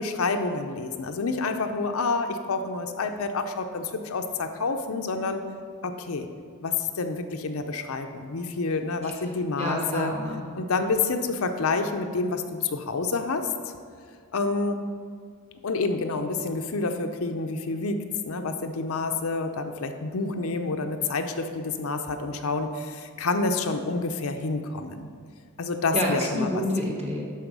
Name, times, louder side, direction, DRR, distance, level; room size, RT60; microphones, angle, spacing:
voice 1, 0.0-5.4 5.8-6.3 6.6-10.1 10.5-13.8 14.3-14.8 15.6-18.0 18.3-25.1 25.6-26.5, left 3 dB, 70° left, 6 dB, 0.6 m, -28 dB
voice 2, 9.5-10.4 25.9-27.2, equal, 30° right, -2 dB, 1.6 m, -28 dB
12.0 x 4.3 x 5.4 m, 2.1 s
head